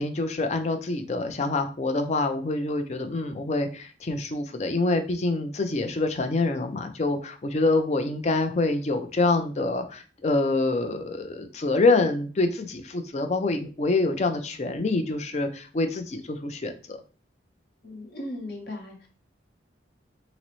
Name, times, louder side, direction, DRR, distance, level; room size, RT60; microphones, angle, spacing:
voice 1, 0.0-17.0, left 2 dB, 35° left, 7 dB, 0.4 m, -26 dB
voice 2, 17.8-19.1, left 1 dB, 55° left, 0 dB, 0.9 m, -37 dB
3.9 x 2.0 x 3.0 m, 0.36 s
head